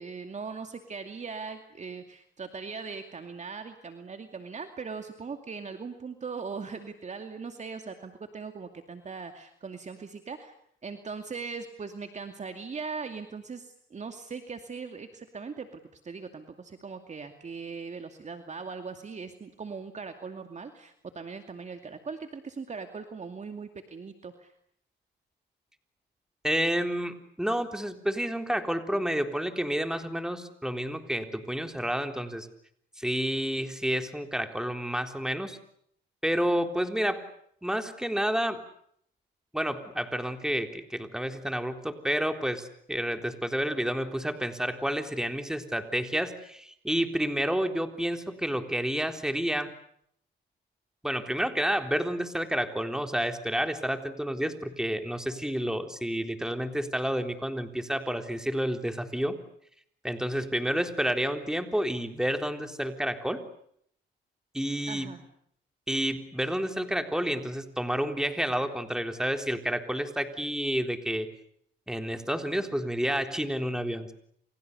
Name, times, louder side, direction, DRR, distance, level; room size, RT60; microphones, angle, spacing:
voice 1, 0.0-10.5 10.8-24.5 64.9-65.2, right 5 dB, 35° right, 6 dB, 2.4 m, -40 dB
voice 2, 26.4-32.5 33.0-35.6 36.2-37.3 37.6-38.6 39.5-49.7 51.0-59.4 60.0-63.4 64.5-65.2 65.9-71.3 71.9-74.1, equal, 5° right, 6 dB, 3.7 m, -30 dB
29.5 x 29.0 x 6.9 m, 0.68 s
cardioid pair, 90°, 20 cm